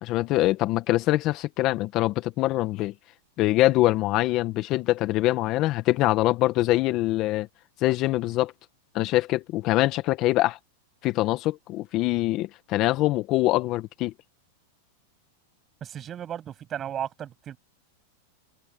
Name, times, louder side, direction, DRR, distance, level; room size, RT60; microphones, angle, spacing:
voice 1, 0.0-2.9 3.4-7.5 7.8-8.5 8.9-10.6 11.0-14.1, left 17 dB, 40° left, 1.3 m, -24 dB
voice 2, 15.8-17.6, right 10 dB, 25° right, 7.7 m, -35 dB
hypercardioid pair, 130°, 0 cm